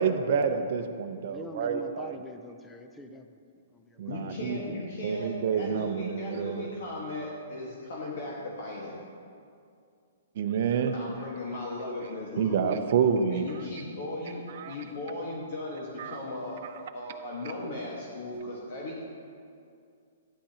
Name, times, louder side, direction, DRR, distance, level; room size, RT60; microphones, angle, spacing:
voice 1, 0.0-2.1 4.0-4.6 5.0-6.7 10.4-11.0 12.4-13.5 14.5-14.7 16.0-16.2, right 6 dB, 50° right, 6 dB, 0.7 m, -28 dB
voice 2, 1.3-3.4 3.7-4.0, equal, 10° left, 6 dB, 0.5 m, -43 dB
voice 3, 4.1-9.0 10.9-12.8 13.3-16.6 16.9-19.0, left 2 dB, 55° left, -3 dB, 1.4 m, -37 dB
11.5 x 10.5 x 2.9 m, 2.3 s
hypercardioid pair, 165°, 0 cm